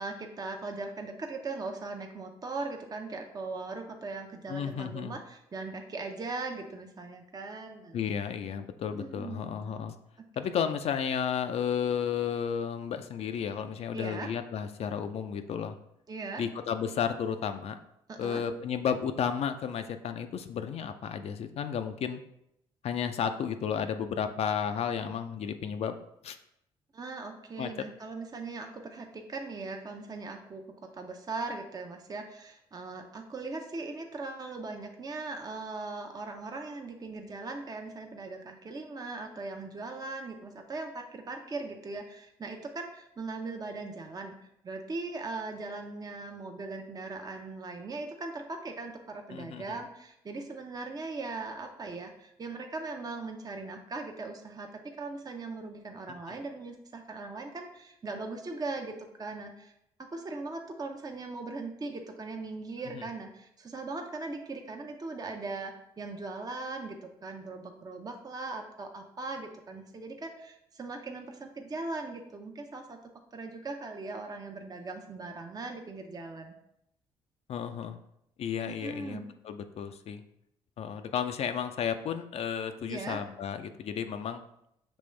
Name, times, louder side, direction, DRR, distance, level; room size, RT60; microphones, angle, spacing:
voice 1, 0.0-8.0 9.0-9.8 13.9-14.3 16.1-16.4 18.1-18.4 26.9-30.6 30.9-44.3 44.6-59.7 60.0-73.0 73.3-76.5 78.7-79.3 82.9-83.2, right 3 dB, 30° right, 3 dB, 0.6 m, -39 dB
voice 2, 4.5-5.2 7.9-9.9 10.4-15.8 16.4-17.8 18.2-22.2 22.8-26.0 26.2-26.4 27.6-27.9 49.3-49.6 77.5-78.0 78.4-80.2 80.8-84.4, left 7 dB, 55° left, 8 dB, 0.4 m, -33 dB
5.3 x 3.0 x 3.2 m, 0.79 s
hypercardioid pair, 50°, 13 cm